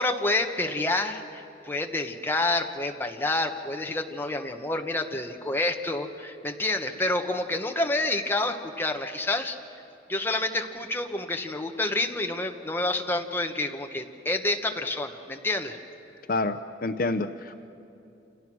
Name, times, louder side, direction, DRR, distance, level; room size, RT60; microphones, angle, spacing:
voice 1, 0.0-9.6 10.1-15.8, left 2 dB, 10° left, 3 dB, 1.2 m, -28 dB
voice 2, 16.3-17.6, left 2 dB, 50° left, 10 dB, 0.7 m, -28 dB
29.0 x 28.0 x 6.3 m, 2.7 s
head